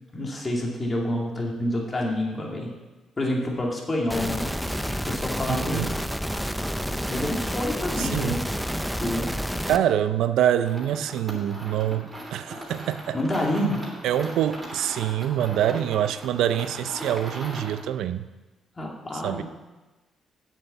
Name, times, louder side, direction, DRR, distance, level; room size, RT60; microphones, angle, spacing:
voice 1, 0.1-2.7 3.2-4.4 4.9-6.0 7.1-8.5 9.0-9.3 13.1-13.8 18.8-19.4, left 1 dB, 25° left, -1 dB, 2.5 m, -28 dB
sound 1, 4.1-9.8, equal, ahead, 0.6 m, -29 dB
voice 2, 5.5-5.9 8.0-8.4 9.7-13.2 14.0-18.3 19.1-19.4, right 10 dB, 85° right, 12 dB, 0.5 m, -25 dB
sound 2, 10.6-17.9, right 1 dB, 20° right, 3.0 m, -39 dB
8.1 x 7.4 x 6.9 m, 1.1 s
cardioid pair, 90°, 0 cm